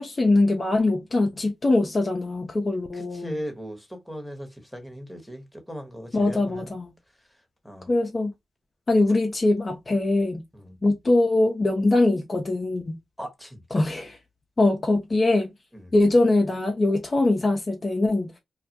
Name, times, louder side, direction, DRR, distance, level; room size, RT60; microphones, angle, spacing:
voice 1, 0.0-3.4 6.1-6.8 7.9-8.3 8.9-10.4 10.8-13.0 13.7-14.1 14.6-15.5 15.9-18.3, left 2 dB, 40° left, 0.5 m, -22 dB
voice 2, 2.9-6.7 7.6-7.9 10.5-10.8 13.2-13.9 15.7-15.9, equal, 5° left, 1.0 m, -38 dB
2.1 x 2.1 x 2.7 m
supercardioid pair, 40°, 0 cm